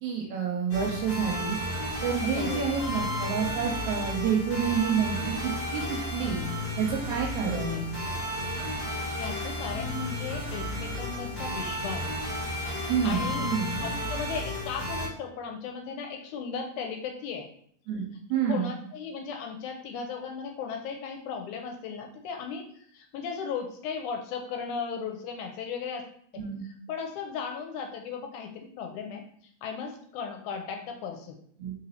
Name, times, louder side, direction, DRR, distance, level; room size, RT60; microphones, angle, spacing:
voice 1, 0.0-1.6 2.0-6.4 6.8-7.8 12.9-13.8 17.9-18.0 18.3-18.7 26.4-26.6 31.6-31.7, right 7 dB, 80° right, 1 dB, 1.8 m, -28 dB
sound 1, 0.7-15.1, left 1 dB, 45° left, 0.8 m, -33 dB
voice 2, 2.2-2.7 7.4-7.8 8.8-12.2 12.7-13.5 13.8-17.5 18.5-26.1 26.3-26.4 26.9-29.2 29.6-31.4, left 6 dB, 80° left, 4 dB, 1.9 m, -36 dB
4.1 x 4.0 x 2.7 m, 0.64 s
omnidirectional pair, 3.7 m